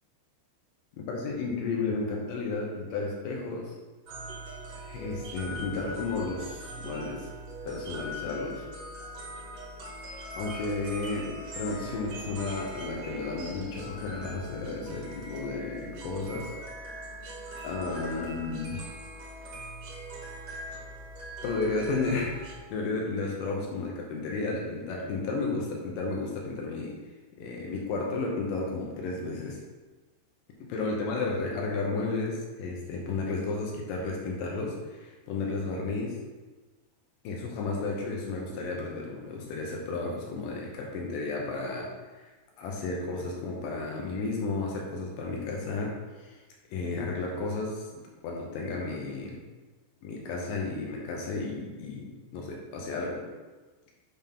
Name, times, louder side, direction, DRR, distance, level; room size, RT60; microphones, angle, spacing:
voice 1, 1.1-3.8 4.7-7.3 7.7-8.6 10.1-16.5 17.6-18.8 21.4-27.0 27.4-29.6 30.6-36.2 37.2-42.3 42.6-46.4 46.7-49.4 50.0-53.2, left 3 dB, 85° left, -1 dB, 1.9 m, -33 dB
sound 1, 4.1-22.6, right 1 dB, 85° right, 1.4 m, -41 dB
7.0 x 5.9 x 3.6 m, 1.3 s
omnidirectional pair, 5.2 m